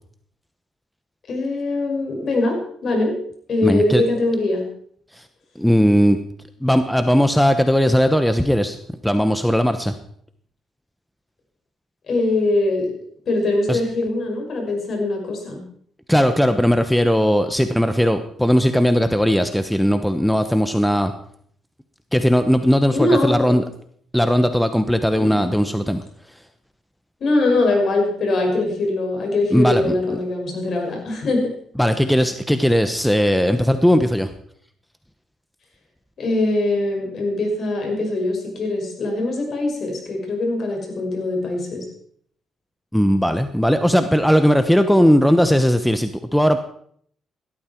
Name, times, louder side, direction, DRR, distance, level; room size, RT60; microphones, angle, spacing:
voice 1, 1.3-2.6 2.8-3.2 3.5-4.6 12.1-12.9 13.3-15.6 22.9-23.6 25.2-25.4 27.2-31.5 36.2-41.8, left 2 dB, 55° left, 2 dB, 6.0 m, -22 dB
voice 2, 3.6-4.0 5.2-5.3 5.6-6.2 6.6-8.8 9.0-9.9 13.7-13.8 16.1-21.1 22.1-23.6 24.1-26.0 29.5-30.2 31.8-34.3 42.9-46.6, equal, ahead, 9 dB, 1.0 m, -18 dB
17.0 x 13.0 x 4.6 m, 0.62 s
cardioid pair, 90°, 0 cm